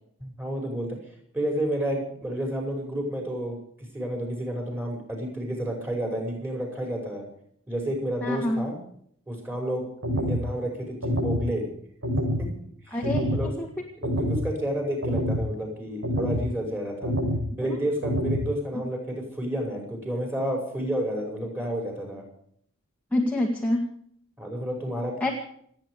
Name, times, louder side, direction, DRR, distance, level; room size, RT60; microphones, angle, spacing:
voice 1, 0.2-1.0 1.3-7.2 7.7-8.7 9.3-11.6 12.4-12.5 12.8-13.0 13.3-13.5 14.0-17.1 17.6-22.2 24.4-25.3, right 1 dB, 10° right, 2 dB, 5.9 m, -30 dB
voice 2, 8.2-8.6 12.9-13.7 17.6-17.8 23.1-23.9 25.2-25.3, left 1 dB, 5° left, -1 dB, 2.2 m, -26 dB
sound 1, 10.0-10.4 11.0-11.4 12.0-12.4 13.0-13.4 14.0-14.4 15.0-15.4 16.0-16.4 17.0-17.4 18.0-18.4, equal, 70° right, 6.4 m, -26 dB
29.0 x 9.8 x 5.0 m, 0.65 s
head